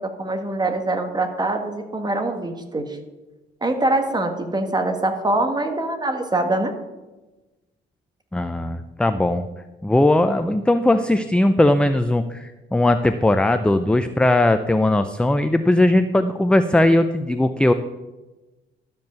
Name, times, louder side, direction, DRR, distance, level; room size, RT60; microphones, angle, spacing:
voice 1, 0.2-2.9 3.6-6.7, right 2 dB, 20° right, 5 dB, 1.6 m, -23 dB
voice 2, 8.3-9.4 9.8-17.7, left 1 dB, 5° left, 9 dB, 0.5 m, -19 dB
12.5 x 5.3 x 6.9 m, 1.1 s
cardioid pair, 90°, 20 cm